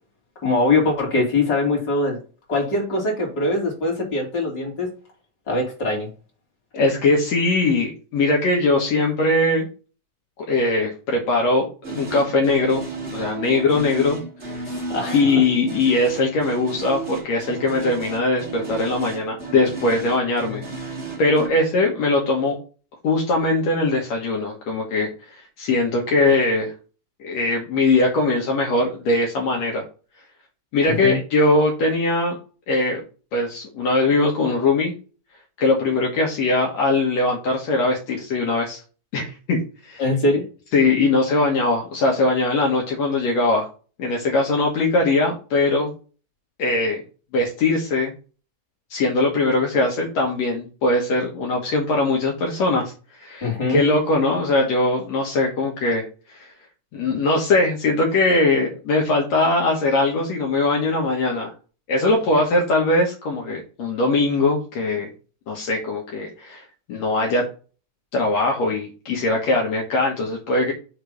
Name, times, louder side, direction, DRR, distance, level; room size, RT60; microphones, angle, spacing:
voice 1, 0.4-2.2 2.5-4.9 5.5-6.1 14.7-15.3 30.9-31.2 40.0-40.4 53.4-53.8, left 2 dB, 25° left, -1 dB, 2.7 m, -22 dB
voice 2, 6.7-9.7 10.5-12.8 13.1-14.2 15.1-20.6 21.2-22.6 23.0-26.7 27.2-29.8 30.7-32.4 32.7-33.0 33.3-34.9 35.6-38.8 39.1-39.6 39.9-40.0 40.7-43.7 44.0-45.9 46.6-47.0 47.3-48.1 48.9-52.9 53.2-56.0 56.4-56.5 56.9-61.5 61.9-65.1 65.5-66.6 66.9-67.5 68.1-70.7, left 2 dB, 70° left, -1 dB, 1.6 m, -21 dB
sound 1, 11.8-21.5, right 3 dB, 65° right, 0.6 m, -33 dB
6.8 x 4.0 x 5.1 m, 0.35 s
omnidirectional pair, 5.1 m